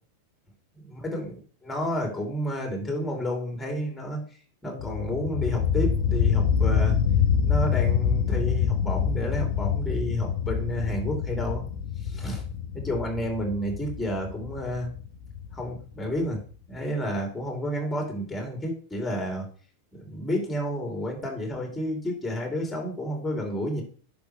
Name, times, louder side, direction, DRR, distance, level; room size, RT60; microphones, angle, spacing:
voice 1, 0.7-4.2 4.6-7.0 7.4-11.7 12.0-12.4 12.7-14.9 15.5-16.4 16.7-19.5 19.9-23.8, equal, 5° left, 1 dB, 3.2 m, -30 dB
sound 1, 4.8-16.4, left 7 dB, 50° left, 0.9 m, -26 dB
10.5 x 6.1 x 3.3 m, 0.41 s
figure-of-eight pair, 90°, 0 cm